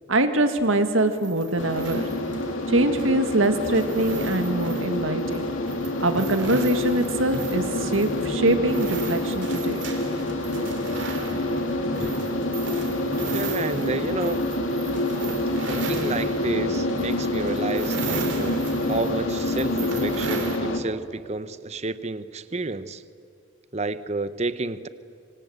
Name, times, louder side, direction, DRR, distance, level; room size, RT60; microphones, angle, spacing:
voice 1, 0.1-2.0 2.7-5.5 6.0-9.8, right 1 dB, 85° right, 8 dB, 2.0 m, -23 dB
sound 1, 0.6-20.6, right 3 dB, 65° right, 3.1 m, -37 dB
sound 2, 1.6-20.8, left 1 dB, 90° left, 2.4 m, -27 dB
voice 2, 13.3-14.4 15.7-18.6 18.9-23.0 23.7-24.9, right 3 dB, 35° right, 14 dB, 0.8 m, -30 dB
25.5 x 25.5 x 8.0 m, 2.5 s
head